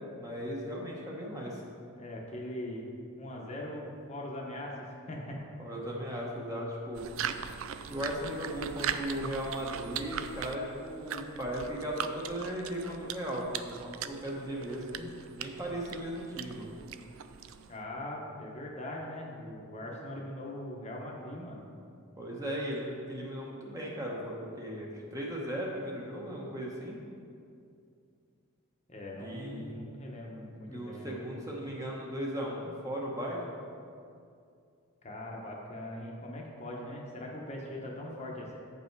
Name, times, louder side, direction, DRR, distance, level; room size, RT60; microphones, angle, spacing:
voice 1, 0.2-1.6 5.6-7.1 7.8-16.8 22.2-27.0 29.2-29.8 30.7-33.5, equal, 15° right, -3 dB, 1.0 m, -37 dB
voice 2, 2.0-2.9 3.2-5.4 17.7-21.7 28.9-31.3 35.0-38.6, left 1 dB, 30° left, -2 dB, 1.0 m, -41 dB
sound 1, 6.9-17.8, right 8 dB, 65° right, 0.3 m, -40 dB
8.3 x 5.5 x 4.6 m, 2.4 s
head